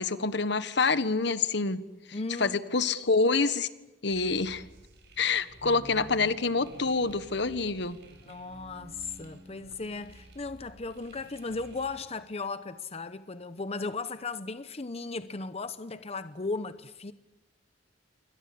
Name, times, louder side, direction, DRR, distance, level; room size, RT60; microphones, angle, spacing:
voice 1, 0.0-1.8 2.4-3.7 4.0-4.6 5.2-8.0, left 4 dB, 70° left, 1.4 m, -27 dB
voice 2, 2.1-2.6 5.6-6.3 8.3-17.1, left 3 dB, 35° left, 0.9 m, -36 dB
sound 1, 4.1-12.0, right 1 dB, 65° right, 6.7 m, -52 dB
27.5 x 24.0 x 8.6 m
head